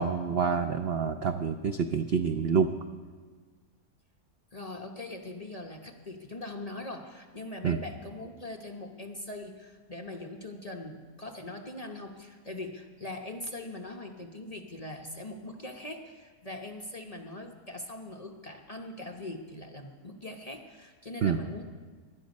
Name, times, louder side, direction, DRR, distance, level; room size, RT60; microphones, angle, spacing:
voice 1, 0.0-2.7 7.6-7.8 21.2-21.4, right 6 dB, 60° right, 7 dB, 0.6 m, -27 dB
voice 2, 4.5-21.6, left 2 dB, 30° left, 3 dB, 0.8 m, -41 dB
24.0 x 11.0 x 5.3 m, 1.5 s
omnidirectional pair, 1.7 m